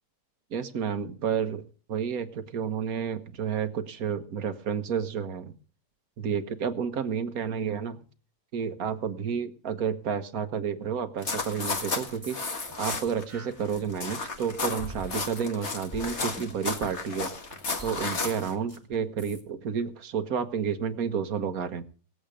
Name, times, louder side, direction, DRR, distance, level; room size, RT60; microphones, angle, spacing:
voice 1, 0.5-1.6 1.9-5.5 6.2-8.0 8.5-12.4 12.8-17.3 17.8-21.8, right 7 dB, 60° right, 9 dB, 1.6 m, -30 dB
sound 1, 11.2-13.2 13.5-18.5, left 3 dB, 40° left, 1.9 m, -33 dB
sound 2, 12.2-14.4 14.8-19.4, equal, 10° right, 2.1 m, -45 dB
19.5 x 8.0 x 5.0 m, 0.41 s
omnidirectional pair, 1.8 m